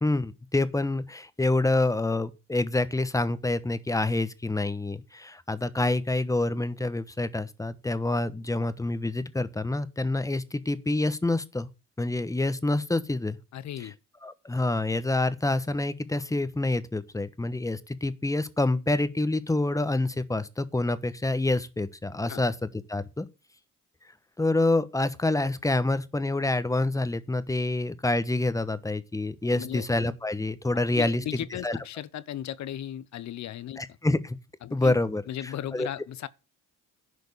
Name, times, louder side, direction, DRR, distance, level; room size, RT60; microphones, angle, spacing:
voice 1, 0.0-11.7 12.0-13.4 13.8-13.9 14.2-22.5 22.9-23.3 24.4-31.8 33.8-34.4 34.7-35.9, left 2 dB, 10° left, 1.1 m, -27 dB
voice 2, 13.5-13.9 22.3-22.4 29.4-29.9 30.9-33.8 34.6-34.9 35.3-36.3, left 11 dB, 65° left, 0.8 m, -36 dB
11.0 x 5.2 x 8.1 m
cardioid pair, 90°, 30 cm